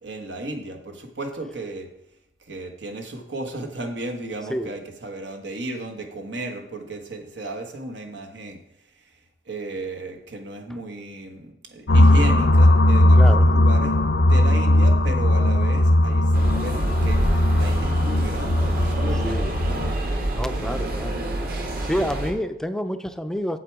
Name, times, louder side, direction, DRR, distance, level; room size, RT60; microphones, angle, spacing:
voice 1, 0.0-1.9 2.4-8.6 8.9-9.1 9.5-16.3 16.6-20.0 20.6-20.8, right 2 dB, 90° right, 4 dB, 1.3 m, -34 dB
sound 1, 11.9-19.9, left 1 dB, 80° left, 0.7 m, -18 dB
voice 2, 13.2-13.5 19.2-19.5 20.3-21.2 21.8-23.6, equal, 5° left, 9 dB, 0.4 m, -28 dB
sound 2, 16.3-22.3, right 1 dB, 55° right, 1.5 m, -27 dB
7.9 x 7.5 x 4.7 m, 0.81 s
head